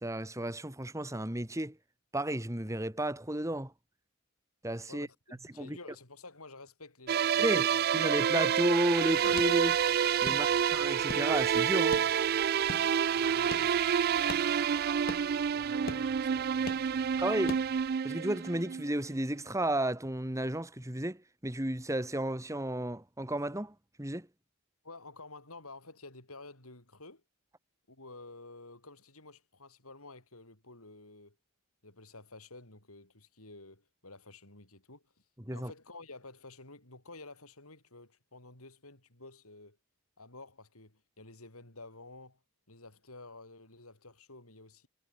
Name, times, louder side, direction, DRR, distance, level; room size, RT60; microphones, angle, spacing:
voice 1, 0.0-1.8 2.1-3.7 4.6-5.1 5.6-5.8 7.4-7.7 7.9-9.8 10.2-12.0 17.2-17.5 18.0-24.3 35.5-35.7, right 1 dB, 15° right, 1.8 m, -32 dB
voice 2, 4.9-7.9 10.3-10.6 13.1-14.7 15.5-17.5 24.8-27.2 27.9-31.4 31.8-35.0 35.5-39.8 40.2-42.4 42.7-44.9, left 2 dB, 85° left, 7.9 m, -51 dB
sound 1, 7.1-18.9, right 8 dB, 45° right, 0.3 m, -28 dB
sound 2, 8.9-18.0, left 2 dB, 45° left, 4.5 m, -46 dB
head